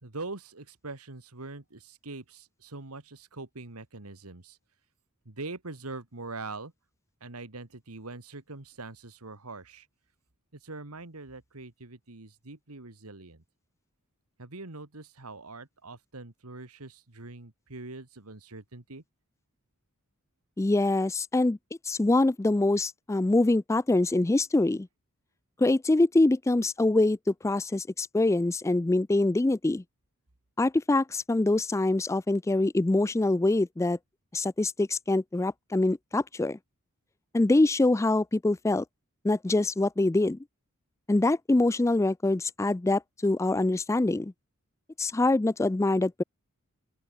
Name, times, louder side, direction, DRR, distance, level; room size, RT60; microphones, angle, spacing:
voice 1, 0.0-4.6 5.3-6.7 7.2-9.9 10.6-13.4 14.4-19.0, right 3 dB, 85° right, 2.2 m, -43 dB
voice 2, 20.6-21.6 21.9-24.9 25.6-29.8 30.6-34.0 34.3-36.6 37.3-38.8 39.2-40.4 41.1-44.3 45.0-46.2, left 2 dB, 15° left, 0.3 m, -24 dB
open air
head